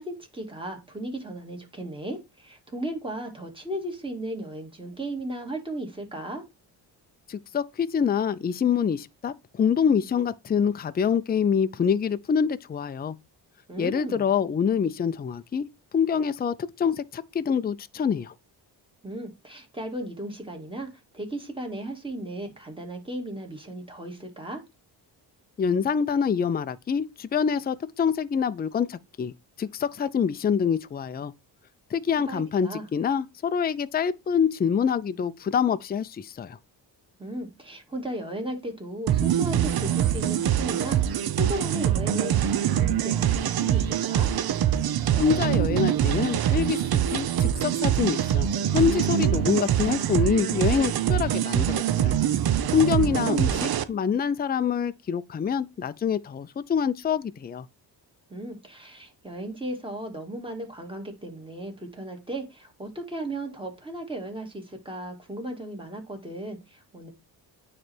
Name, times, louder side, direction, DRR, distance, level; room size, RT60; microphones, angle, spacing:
voice 1, 0.0-6.4 13.7-14.3 19.0-24.6 32.3-32.9 37.2-44.3 53.0-53.7 58.3-67.1, right 1 dB, 10° right, 2.2 m, -36 dB
voice 2, 7.3-13.2 13.8-15.7 15.9-18.3 25.6-29.3 29.6-31.3 31.9-36.6 45.2-52.2 52.7-57.7, left 7 dB, 25° left, 0.4 m, -26 dB
sound 1, 39.1-53.8, right 10 dB, 60° right, 0.7 m, -24 dB
9.3 x 3.3 x 4.4 m
cardioid pair, 90°, 42 cm